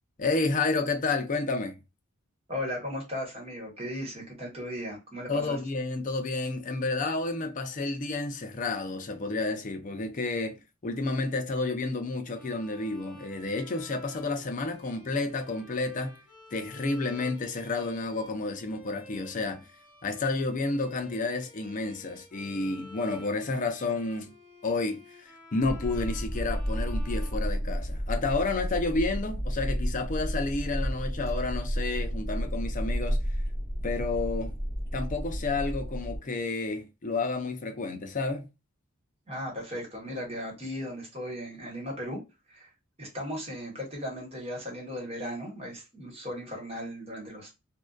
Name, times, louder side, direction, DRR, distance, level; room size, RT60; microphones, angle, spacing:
voice 1, 0.2-1.8 5.3-10.6 10.8-16.2 16.5-19.7 20.0-24.3 24.6-33.2 33.8-34.5 34.9-38.5, left 3 dB, 40° left, 0.4 m, -30 dB
voice 2, 2.5-5.6 39.3-42.2 42.5-42.7 43.0-47.6, equal, 30° right, 1.2 m, -36 dB
Bowed string instrument, 12.3-28.1, left 1 dB, 10° right, 0.9 m, -52 dB
sound 1, 25.6-36.2, equal, 20° left, 1.0 m, -31 dB
2.6 x 2.2 x 2.2 m
head